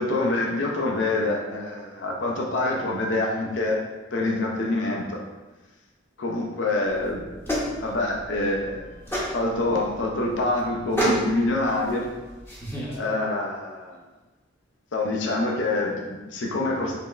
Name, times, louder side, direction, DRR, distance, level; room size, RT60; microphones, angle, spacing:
voice 1, 0.0-3.8 4.1-5.2 6.2-8.9 9.3-12.1 12.9-14.0 14.9-17.0, left 2 dB, 70° left, 0 dB, 0.5 m, -26 dB
sound 1, 6.9-13.0, equal, 10° left, 0.8 m, -31 dB
5.0 x 3.2 x 2.3 m, 1.2 s
head